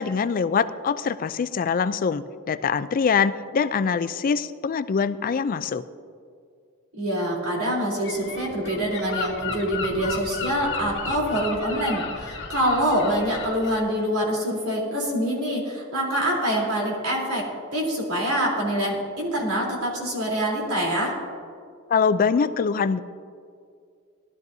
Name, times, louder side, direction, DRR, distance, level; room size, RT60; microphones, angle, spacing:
voice 1, 0.0-5.8 21.9-23.0, left 6 dB, 40° left, 13 dB, 0.4 m, -23 dB
voice 2, 6.9-17.5 17.7-21.1, equal, 90° right, -2 dB, 3.5 m, -25 dB
Gull seagull, 8.0-13.8, left 5 dB, 60° left, 1.2 m, -34 dB
18.5 x 12.0 x 2.7 m, 2.2 s
head